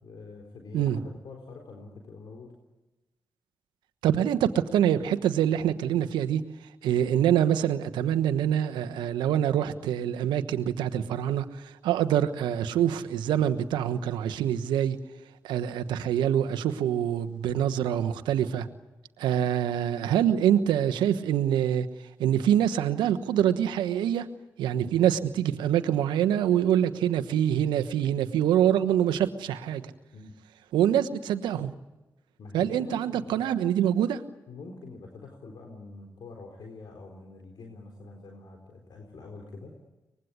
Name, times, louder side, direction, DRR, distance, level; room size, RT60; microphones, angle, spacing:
voice 1, 0.0-2.5 30.1-30.3 32.4-33.5 34.5-39.7, left 3 dB, 70° left, 1 dB, 4.0 m, -45 dB
voice 2, 4.0-6.4 6.8-11.4 11.8-15.0 15.4-18.7 19.2-21.9 22.2-24.3 24.6-29.8 30.7-31.7 32.5-34.2, right 10 dB, 90° right, 11 dB, 1.1 m, -25 dB
24.5 x 21.0 x 9.7 m, 1.1 s
supercardioid pair, 40°, 8 cm